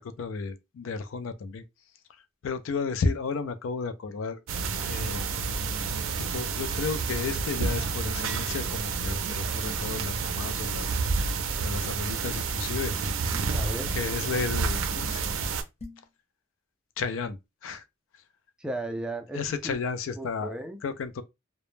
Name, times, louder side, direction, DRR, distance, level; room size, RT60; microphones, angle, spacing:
voice 1, 0.0-1.6 2.4-4.4 4.8-5.5 6.2-11.0 11.6-12.9 13.9-15.4 17.0-17.8 19.3-20.5 20.8-21.2, left 4 dB, 75° left, 0.4 m, -33 dB
sound 1, 4.5-15.6, right 4 dB, 75° right, 0.4 m, -30 dB
sound 2, 13.3-13.7 15.8-16.1, left 2 dB, 30° left, 0.7 m, -44 dB
voice 2, 13.5-14.0 18.6-19.7 20.2-20.8, right 1 dB, 5° right, 0.3 m, -35 dB
2.1 x 2.0 x 3.1 m
head